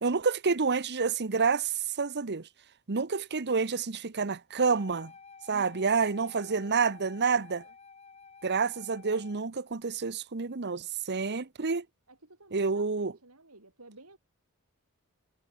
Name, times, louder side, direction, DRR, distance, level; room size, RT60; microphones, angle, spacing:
voice 1, 0.0-2.5 2.9-5.1 5.5-7.6 8.4-11.8 12.5-13.1, right 5 dB, 50° right, 1.0 m, -28 dB
Wind instrument woodwind instrument, 4.6-9.5, left 5 dB, 30° left, 5.9 m, -52 dB
voice 2, 5.5-5.9 6.2-7.2 7.6-7.7 12.1-14.2, right 2 dB, 80° right, 7.4 m, -54 dB
head